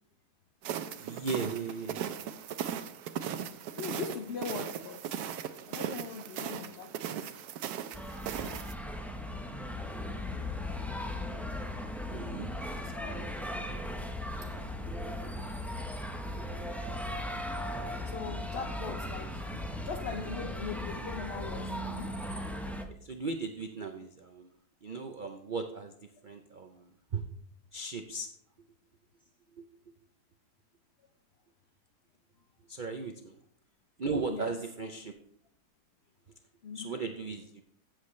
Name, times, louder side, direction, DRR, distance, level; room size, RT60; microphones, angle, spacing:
sound 1, 0.6-8.7, right 9 dB, 75° right, 1.2 m, -38 dB
voice 1, 1.0-2.0 12.1-13.3 13.6-13.8 14.9-15.0 22.9-24.5 24.8-26.0 26.2-27.2 27.7-28.3 29.5-29.7 32.7-33.4 34.0-35.1 36.7-37.6, right 4 dB, 55° right, 0.5 m, -37 dB
voice 2, 3.7-7.3 12.6-13.2 18.0-22.2 34.3-34.6 36.6-37.0, left 6 dB, 60° left, 0.7 m, -41 dB
sound 2, 7.9-22.9, left 1 dB, ahead, 0.4 m, -37 dB
15.0 x 7.7 x 3.2 m
omnidirectional pair, 1.7 m